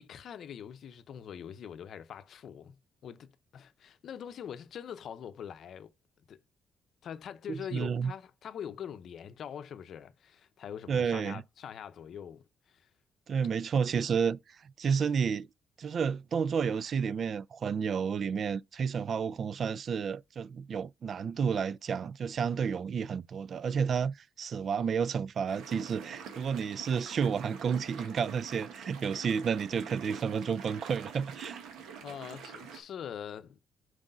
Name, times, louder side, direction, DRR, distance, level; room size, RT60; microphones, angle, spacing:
voice 1, 0.0-2.8 3.0-5.9 6.3-6.4 7.0-12.9 13.3-13.4 32.0-33.6, left 8 dB, 65° left, 0.6 m, -43 dB
voice 2, 7.5-8.1 10.9-11.4 13.3-15.5 15.8-31.6, right 6 dB, 55° right, 0.3 m, -31 dB
sound 1, 25.5-32.8, right 6 dB, 85° right, 1.3 m, -46 dB
4.9 x 3.7 x 5.3 m
cardioid pair, 90°, 0 cm